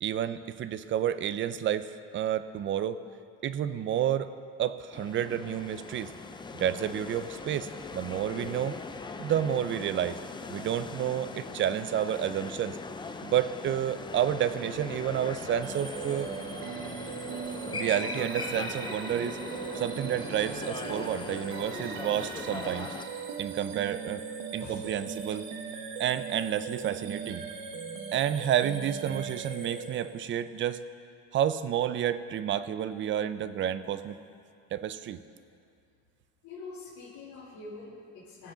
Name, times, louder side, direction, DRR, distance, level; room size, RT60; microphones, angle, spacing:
voice 1, 0.0-3.0 3.4-4.3 4.6-6.1 6.6-8.8 9.2-10.2 10.5-12.8 13.2-16.3 17.7-19.4 19.8-22.9 23.4-24.2 24.5-25.5 26.0-27.4 28.1-30.8 31.3-34.2 34.7-35.2, right 10 dB, 35° right, 13 dB, 0.5 m, -30 dB
sound 1, 4.9-23.0, left 4 dB, 15° left, 0.5 m, -40 dB
sound 2, 15.6-30.4, right 6 dB, 70° right, 1.4 m, -39 dB
voice 2, 36.4-38.5, left 3 dB, 55° left, -10 dB, 3.2 m, -45 dB
20.0 x 7.6 x 3.8 m, 2.3 s
cardioid pair, 120°, 34 cm